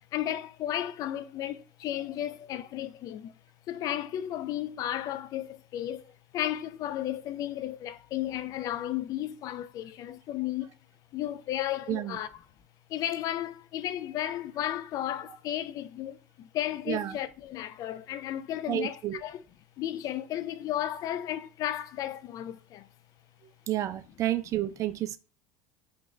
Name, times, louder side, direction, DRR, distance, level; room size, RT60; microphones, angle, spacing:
voice 1, 0.1-3.3 3.7-10.8 11.1-12.3 12.9-19.4 19.8-22.9, left 12 dB, 50° left, 0.4 m, -34 dB
voice 2, 11.9-12.2 16.9-17.2 18.7-19.2 23.7-25.2, right 13 dB, 40° right, 0.4 m, -30 dB
3.8 x 2.3 x 3.1 m
hypercardioid pair, 80°, 8 cm